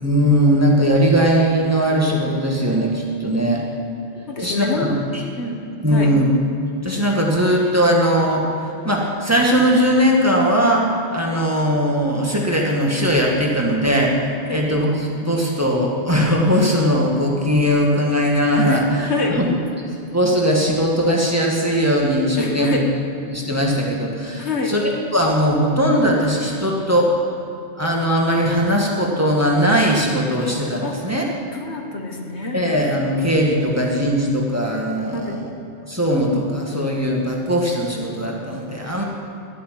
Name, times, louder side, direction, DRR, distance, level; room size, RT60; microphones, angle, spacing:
voice 1, 0.0-3.6 4.4-5.2 5.8-6.3 6.8-8.4 8.8-14.9 15.1-19.1 19.4-19.5 19.8-22.8 23.3-27.1 27.8-31.2 32.5-35.5 35.9-39.0, equal, 15° right, -2 dB, 2.0 m, -19 dB
voice 2, 4.3-5.0 5.4-6.1 14.5-14.6 18.7-19.4 22.4-22.9 24.4-24.7 30.8-30.9 31.5-32.6 35.1-35.4, left 2 dB, 75° left, 2 dB, 1.8 m, -26 dB
13.0 x 8.7 x 9.4 m, 2.8 s
omnidirectional pair, 1.1 m